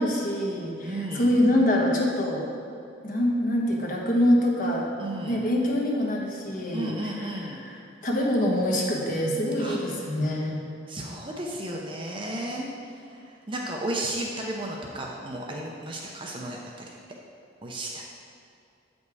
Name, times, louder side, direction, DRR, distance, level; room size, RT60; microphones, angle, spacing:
voice 1, 0.0-2.5 3.0-4.9 5.3-7.7 8.0-10.6, left 1 dB, 45° left, -2 dB, 1.2 m, -25 dB
voice 2, 0.8-1.3 5.0-5.4 6.7-7.6 9.6-9.8 10.1-10.2 10.9-16.9 17.6-18.0, right 1 dB, 25° right, -1 dB, 0.6 m, -34 dB
8.1 x 5.3 x 4.8 m, 2.5 s
head